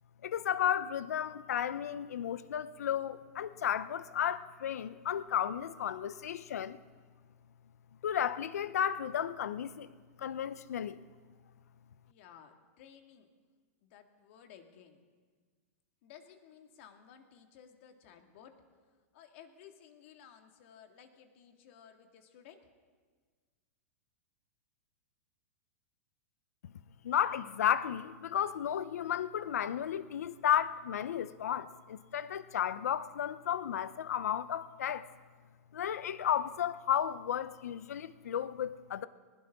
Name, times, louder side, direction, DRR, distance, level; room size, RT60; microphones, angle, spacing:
voice 1, 0.2-6.8 8.0-9.9 10.2-11.0 27.0-35.0 35.7-39.1, left 9 dB, 90° left, 0.7 m, -33 dB
voice 2, 12.1-13.3 13.8-15.0 16.0-18.5 19.1-22.6, left 8 dB, 50° left, 1.9 m, -56 dB
20.0 x 19.0 x 3.6 m
supercardioid pair, 150°, 8 cm